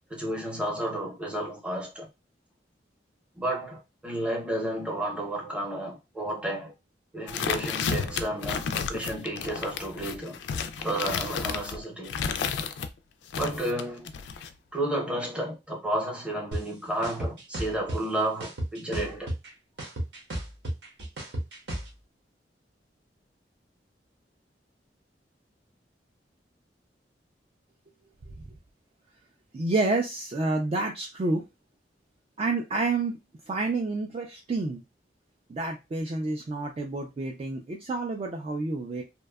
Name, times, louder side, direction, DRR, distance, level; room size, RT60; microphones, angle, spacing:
voice 1, 0.1-2.1 3.4-6.7 7.1-10.4 10.8-12.1 13.3-14.1 14.7-19.3, right 1 dB, 5° right, 0.7 m, -32 dB
sound 1, 7.3-12.9 13.3-14.5, left 6 dB, 75° left, 0.3 m, -32 dB
sound 2, 16.5-16.6 17.0-18.0 18.4-19.5 19.8-21.9, right 1 dB, 75° right, 0.9 m, -32 dB
voice 2, 29.5-31.4 32.4-33.2 33.5-34.8 35.5-39.0, right 3 dB, 35° right, 0.3 m, -29 dB
2.6 x 2.2 x 2.2 m
head